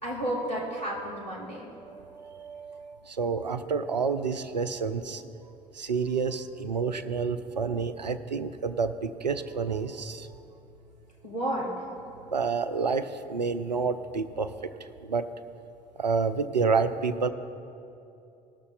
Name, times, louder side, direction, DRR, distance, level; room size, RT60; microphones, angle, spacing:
voice 1, 0.0-1.7 11.2-11.7, right 1 dB, 85° left, -6 dB, 2.2 m, -32 dB
voice 2, 1.7-5.3 5.7-10.3 12.3-14.7 15.0-15.3 16.0-17.3, right 5 dB, 85° right, 13 dB, 0.4 m, -29 dB
19.0 x 6.6 x 3.9 m, 2.8 s
figure-of-eight pair, 55°, 21 cm